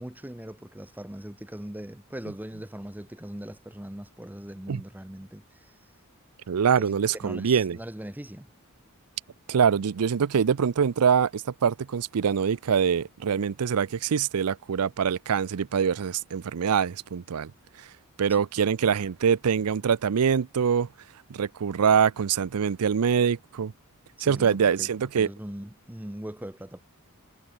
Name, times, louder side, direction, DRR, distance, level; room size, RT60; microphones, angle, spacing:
voice 1, 0.0-5.7 6.8-8.5 24.2-26.8, right 1 dB, 10° right, 0.9 m, -40 dB
voice 2, 6.5-7.8 9.5-17.5 18.2-20.9 21.3-23.7 24.2-25.3, right 7 dB, 80° right, 0.5 m, -24 dB
head